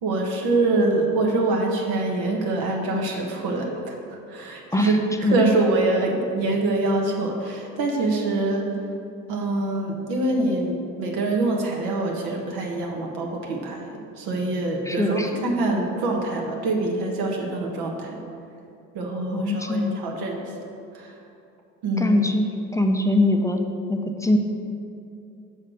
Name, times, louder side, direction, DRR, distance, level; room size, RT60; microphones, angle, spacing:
voice 1, 0.0-4.0 4.3-4.9 5.2-8.7 9.3-13.8 14.2-18.2 18.9-20.4 20.9-21.1 21.8-22.2, right 2 dB, 65° right, 0 dB, 1.4 m, -25 dB
voice 2, 14.8-15.4 19.3-20.0 22.0-23.6 23.9-24.4, left 2 dB, 10° left, 3 dB, 0.7 m, -22 dB
6.4 x 4.2 x 6.4 m, 2.6 s
hypercardioid pair, 60°, 40 cm